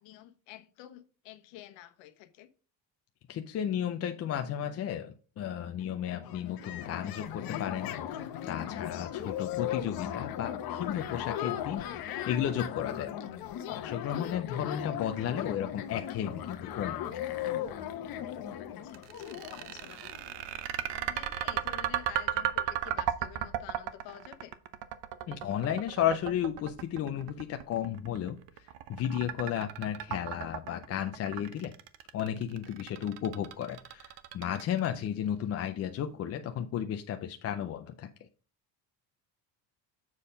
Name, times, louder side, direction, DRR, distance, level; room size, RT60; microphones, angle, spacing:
voice 1, 0.0-2.5 14.4-14.6 18.8-20.2 20.9-24.5, left 13 dB, 85° left, 1.2 m, -50 dB
voice 2, 3.3-11.8 12.3-13.1 13.7-17.0 25.3-28.4 28.9-31.7 32.1-38.1, left 10 dB, 35° left, 0.5 m, -33 dB
sound 1, 5.8-5.9 6.0-20.7, left 10 dB, 55° left, 1.0 m, -37 dB
sound 2, 18.9-35.1, right 12 dB, 70° right, 0.8 m, -35 dB
7.3 x 4.3 x 5.1 m
cardioid pair, 150°, 44 cm